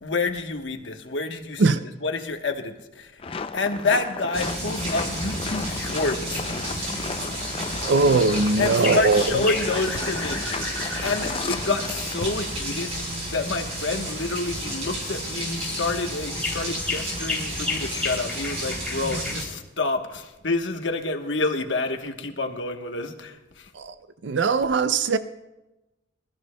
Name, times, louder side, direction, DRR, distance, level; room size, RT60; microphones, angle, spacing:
voice 1, 0.0-6.4 6.7-6.9 8.6-12.9 13.3-23.7, left 3 dB, 80° left, 1.1 m, -28 dB
sound 1, 3.2-12.8, left 4 dB, 30° left, 0.4 m, -34 dB
sound 2, 4.3-19.4, right 1 dB, 35° right, 4.4 m, -32 dB
sound 3, 7.4-7.5 8.1-8.5 8.8-9.1 9.5-11.3 14.8-15.0 15.5-15.9 16.3-19.3, left 3 dB, 10° left, 3.0 m, -32 dB
voice 2, 7.8-9.4 23.7-23.9 24.2-25.2, right 4 dB, 75° right, 0.5 m, -20 dB
25.5 x 13.5 x 2.2 m
head